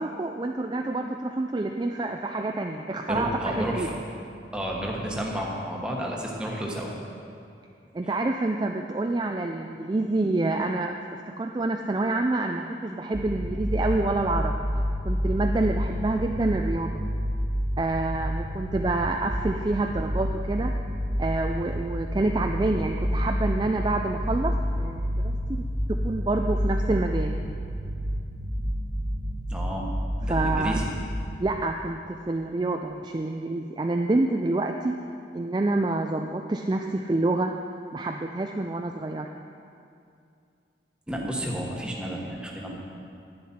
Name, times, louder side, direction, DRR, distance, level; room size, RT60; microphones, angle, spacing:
voice 1, 0.0-3.9 7.9-14.6 15.0-17.0 17.8-20.7 21.2-24.5 24.8-25.4 26.0-27.3 30.3-30.8 31.4-35.0 35.3-37.5 37.9-39.3, right 2 dB, 25° right, 3 dB, 0.3 m, -27 dB
voice 2, 3.1-3.9 4.5-6.9 29.5-29.9 30.2-30.9 41.1-42.9, equal, 5° right, -2 dB, 1.2 m, -31 dB
sound 1, 13.1-31.4, equal, 45° right, 1.2 m, -29 dB
11.0 x 10.0 x 4.3 m, 2.5 s
head